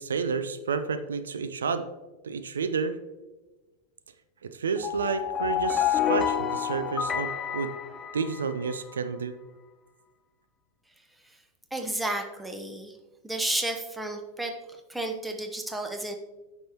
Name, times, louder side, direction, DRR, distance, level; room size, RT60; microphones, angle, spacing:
voice 1, 0.0-1.9 2.2-3.0 4.4-7.7 8.1-9.4, right 5 dB, 70° right, 11 dB, 0.4 m, -30 dB
sound 1, 4.8-8.7, left 9 dB, 20° left, 0.4 m, -29 dB
voice 2, 11.7-13.0 13.2-14.6 14.9-16.1, right 1 dB, 5° right, 4 dB, 0.9 m, -32 dB
9.2 x 6.0 x 2.9 m, 1.2 s
figure-of-eight pair, 90°, 0 cm